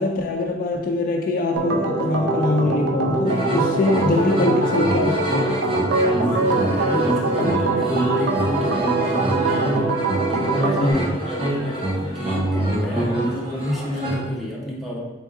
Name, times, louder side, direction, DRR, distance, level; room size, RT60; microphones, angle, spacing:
voice 1, 0.0-5.5 7.4-7.6 10.8-11.2, left 2 dB, 50° left, 2 dB, 0.3 m, -23 dB
Organ, 1.6-10.9, right 2 dB, 60° right, 0.4 m, -23 dB
sound 1, 3.3-14.2, right 1 dB, 30° right, 0.9 m, -26 dB
voice 2, 6.1-15.0, left 1 dB, ahead, -4 dB, 0.6 m, -30 dB
3.7 x 3.6 x 2.4 m, 1.1 s
head